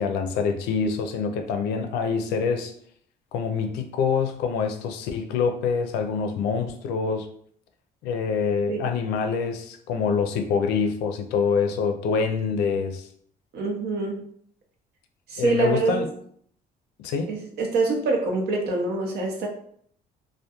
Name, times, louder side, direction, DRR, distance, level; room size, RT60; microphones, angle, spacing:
voice 1, 0.0-2.7 3.3-7.3 8.0-13.1 15.4-16.1 17.0-17.3, left 5 dB, 90° left, 6 dB, 0.4 m, -25 dB
voice 2, 13.5-14.2 15.3-16.0 17.3-19.5, right 3 dB, 70° right, 1 dB, 0.7 m, -25 dB
2.2 x 2.1 x 2.8 m, 0.63 s
cardioid pair, 110°, 17 cm